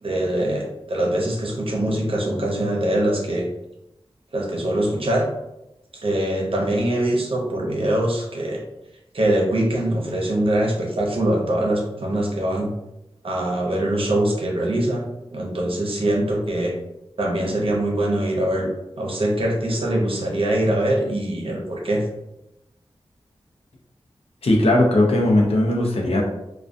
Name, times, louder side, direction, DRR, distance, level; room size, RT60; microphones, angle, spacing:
voice 1, 0.0-3.5 4.3-5.3 5.9-8.6 9.1-12.7 13.2-15.0 15.3-16.7 17.2-18.7 19.0-22.0, right 1 dB, 60° right, -1 dB, 0.7 m, -23 dB
voice 2, 24.4-26.2, left 1 dB, 70° left, -1 dB, 0.6 m, -18 dB
2.3 x 2.2 x 2.5 m, 0.90 s
wide cardioid pair, 55°, 11 cm